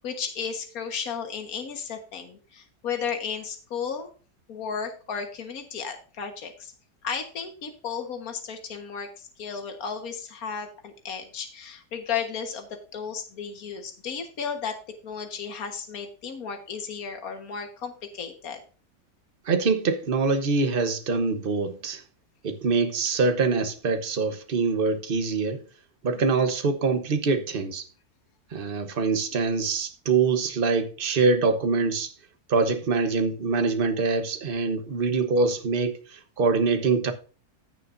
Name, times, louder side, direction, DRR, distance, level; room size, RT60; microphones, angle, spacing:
voice 1, 0.0-4.1 4.5-6.7 7.0-14.8 15.0-18.6 26.2-26.5, left 6 dB, 65° left, 1.9 m, -34 dB
voice 2, 19.5-22.0 22.4-25.6 26.0-27.8 28.5-32.1 32.5-37.1, right 4 dB, 40° right, 1.2 m, -24 dB
16.0 x 6.7 x 2.6 m
omnidirectional pair, 1.7 m